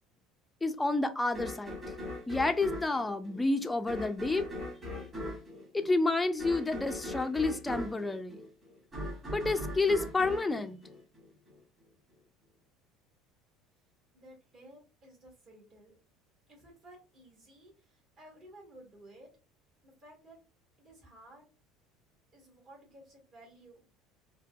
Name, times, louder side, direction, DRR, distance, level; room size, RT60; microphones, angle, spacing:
voice 1, 0.6-1.8 2.3-4.5 5.7-8.4 9.3-10.8, left 2 dB, 10° left, 7 dB, 0.3 m, -29 dB
sound 1, 1.3-11.6, left 1 dB, 25° right, 1.7 m, -41 dB
voice 2, 14.1-16.0 16.5-19.3 19.8-20.4 20.8-21.4 22.3-23.9, right 1 dB, 45° right, -1 dB, 1.7 m, -55 dB
4.1 x 2.2 x 2.3 m, 0.32 s
cardioid pair, 125°, 0 cm